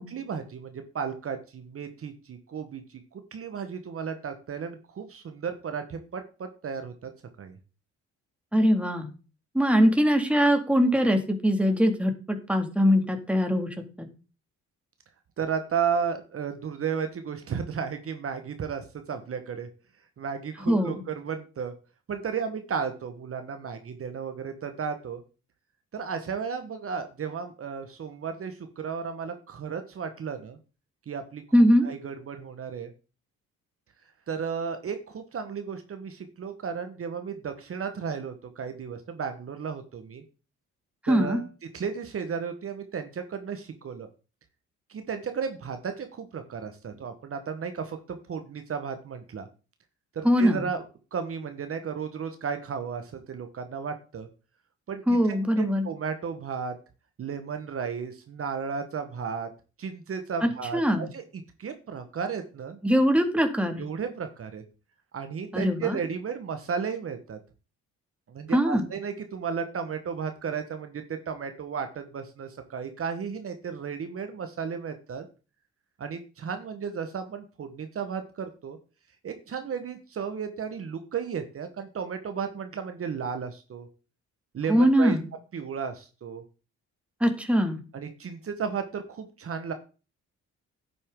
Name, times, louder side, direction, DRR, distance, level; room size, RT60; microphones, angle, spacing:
voice 1, 0.0-7.1 7.4-7.6 15.4-19.7 20.2-21.7 22.1-25.2 25.9-30.6 31.1-31.4 31.8-32.9 34.3-40.2 41.1-41.5 41.7-44.1 44.9-49.5 50.1-50.8 51.1-54.3 54.9-56.7 57.2-59.5 59.8-61.2 61.6-62.8 63.8-64.6 65.1-67.4 68.3-75.3 76.0-78.8 79.2-83.9 84.5-85.2 85.5-86.4 87.9-89.7, right 6 dB, 50° right, 7 dB, 1.3 m, -34 dB
voice 2, 8.5-9.1 9.5-13.7 14.0-14.1 20.7-21.0 31.5-31.9 41.0-41.4 50.2-50.7 55.1-55.9 60.4-61.1 62.8-63.8 65.5-66.0 68.5-68.9 84.7-85.3 87.2-87.8, equal, 5° right, 5 dB, 2.1 m, -22 dB
11.0 x 8.4 x 3.7 m, 0.34 s
cardioid pair, 90°, 30 cm